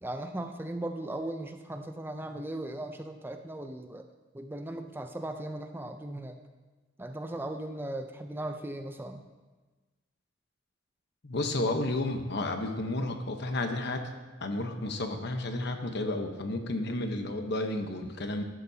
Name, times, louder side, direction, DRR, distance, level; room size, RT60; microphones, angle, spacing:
voice 1, 0.0-4.1 4.3-6.4 7.0-9.2, right 1 dB, 10° right, 6 dB, 0.5 m, -37 dB
voice 2, 11.2-14.0 14.4-18.4, left 2 dB, 60° left, 5 dB, 1.0 m, -32 dB
13.5 x 11.0 x 2.8 m, 1.2 s
head